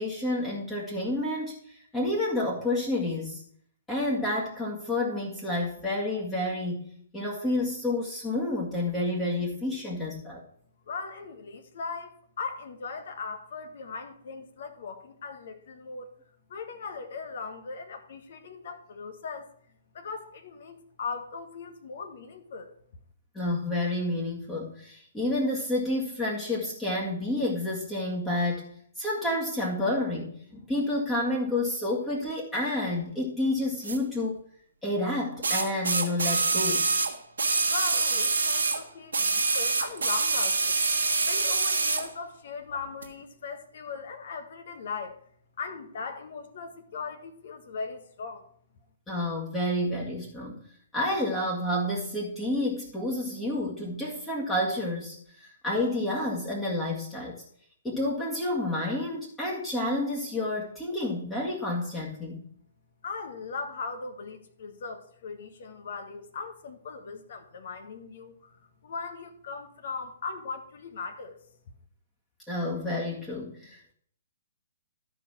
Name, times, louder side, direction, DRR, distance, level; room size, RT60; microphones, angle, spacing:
voice 1, 0.0-3.4 3.9-10.4 23.3-34.4 34.8-36.9 49.1-50.6 50.9-57.4 57.8-62.4 72.5-73.9, left 1 dB, 10° left, -5 dB, 1.9 m, -29 dB
voice 2, 10.9-16.1 16.5-19.5 19.9-22.7 37.7-40.8 41.2-45.2 45.6-48.4 63.0-71.4, left 4 dB, 50° left, 6 dB, 1.4 m, -39 dB
sound 1, 33.8-34.0 35.4-38.8 39.1-42.1 43.0-43.1, right 3 dB, 65° right, 1.4 m, -26 dB
12.0 x 5.3 x 6.1 m, 0.63 s
figure-of-eight pair, 120°, 0 cm